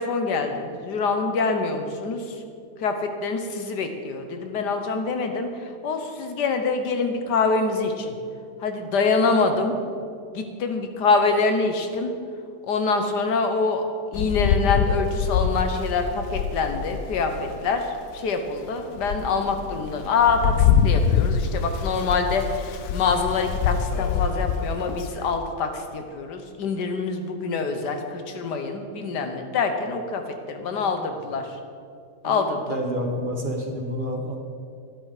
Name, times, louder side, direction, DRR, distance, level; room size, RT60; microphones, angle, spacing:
voice 1, 0.0-2.3 2.8-8.1 8.6-9.7 10.3-12.1 12.7-13.8 14.1-31.5 32.2-32.8, left 4 dB, 85° left, 6 dB, 1.6 m, -25 dB
Rain, 14.1-17.7 18.2-18.3 18.8-25.4, left 7 dB, 70° left, 1.1 m, -25 dB
voice 2, 30.6-31.3 32.2-34.4, equal, 35° right, 2 dB, 1.1 m, -30 dB
12.5 x 10.0 x 5.0 m, 2.4 s
omnidirectional pair, 1.8 m